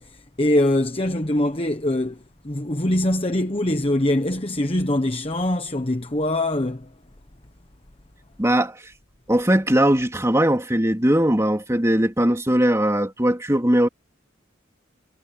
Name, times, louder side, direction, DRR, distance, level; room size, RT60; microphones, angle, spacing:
voice 1, 0.0-6.9, left 1 dB, 30° left, 1.2 m, -23 dB
voice 2, 8.4-8.8 9.3-13.9, right 1 dB, 15° right, 2.6 m, -20 dB
head